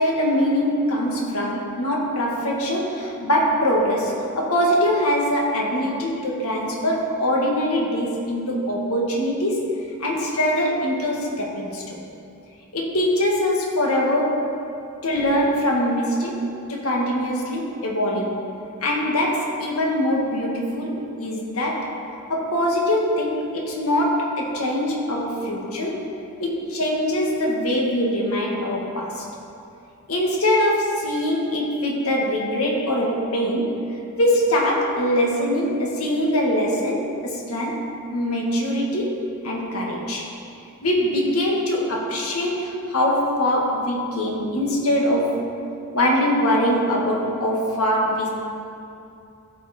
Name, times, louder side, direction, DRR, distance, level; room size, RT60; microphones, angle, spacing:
voice 1, 0.0-9.7 10.0-12.0 12.7-14.5 15.0-18.3 18.8-21.9 22.3-26.0 26.4-29.2 30.1-37.8 38.1-39.2 39.4-40.3 40.8-45.4 45.9-48.3, equal, 90° left, -2 dB, 1.7 m, -23 dB
14.5 x 5.7 x 4.3 m, 2.6 s
head